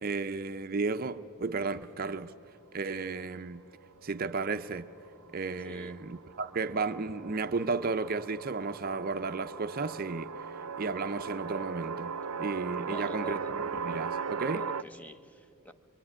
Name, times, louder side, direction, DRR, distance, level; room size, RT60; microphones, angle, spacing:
voice 1, 0.0-2.3 2.7-3.6 4.0-4.9 5.3-14.7, right 4 dB, 40° right, 0.6 m, -34 dB
sound 1, 4.7-14.8, right 6 dB, 85° right, 0.6 m, -38 dB
voice 2, 5.6-6.0 12.8-13.5 14.5-15.7, equal, 5° left, 0.7 m, -47 dB
25.5 x 23.5 x 9.8 m
head